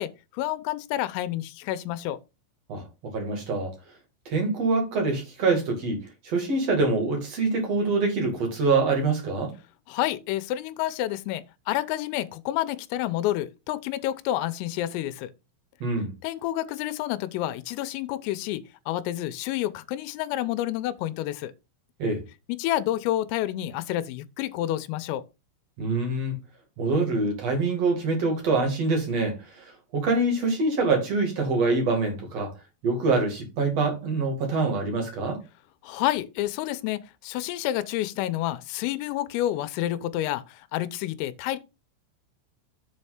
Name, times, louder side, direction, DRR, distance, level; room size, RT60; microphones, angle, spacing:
voice 1, 0.0-2.2 9.9-15.3 16.2-21.5 22.5-25.2 35.8-41.6, left 14 dB, 90° left, 3.3 m, -29 dB
voice 2, 2.7-3.7 4.3-9.5 15.8-16.1 22.0-22.2 25.8-26.3 26.8-32.5 32.8-35.4, right 3 dB, 50° right, 2.1 m, -25 dB
7.8 x 4.3 x 5.7 m
omnidirectional pair, 5.9 m